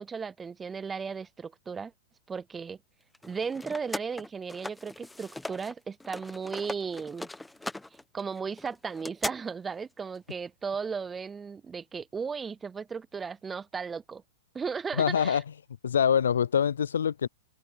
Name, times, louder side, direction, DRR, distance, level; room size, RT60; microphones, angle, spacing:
voice 1, 0.0-1.9 2.3-2.8 3.2-7.3 8.1-14.2 14.5-15.4, right 5 dB, 15° right, 0.3 m, -35 dB
sound 1, 3.1-5.7 6.0-9.3, left 2 dB, 5° left, 1.0 m, -39 dB
voice 2, 14.9-15.4 15.8-17.3, left 8 dB, 90° left, 0.3 m, -24 dB
hypercardioid pair, 140°, 0 cm